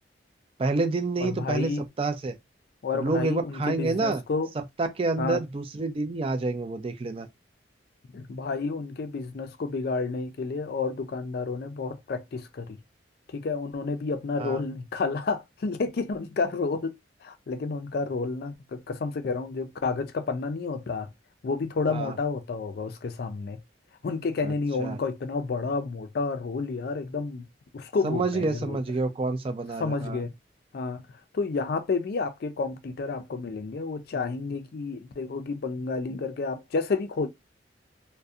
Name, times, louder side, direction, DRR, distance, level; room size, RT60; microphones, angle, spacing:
voice 1, 0.6-1.7 2.0-2.4 2.9-4.2 4.8-7.3 14.4-14.6 21.9-22.1 24.4-24.5 24.8-25.0 28.0-30.2, right 3 dB, 30° right, 0.4 m, -28 dB
voice 2, 1.2-1.9 2.8-4.5 5.2-5.4 8.1-12.8 13.3-17.0 17.2-21.1 21.4-23.6 24.0-27.5 27.7-28.8 29.8-30.3 30.7-31.0 31.3-37.3, left 4 dB, 55° left, 0.4 m, -30 dB
2.6 x 2.1 x 2.3 m
head